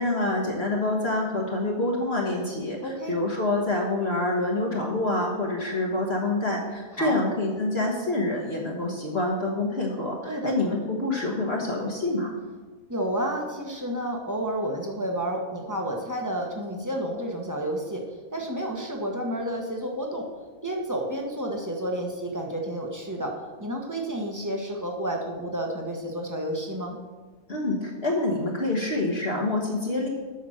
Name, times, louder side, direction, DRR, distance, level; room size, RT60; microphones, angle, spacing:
voice 1, 0.0-12.4 27.5-30.1, left 2 dB, 45° left, -2 dB, 1.4 m, -27 dB
voice 2, 2.8-3.2 7.0-7.2 10.2-10.5 12.9-18.0 18.3-20.3 20.6-23.3 23.6-27.0, right 1 dB, 15° right, 0 dB, 1.1 m, -30 dB
8.3 x 5.9 x 6.4 m, 1.4 s
omnidirectional pair, 1.5 m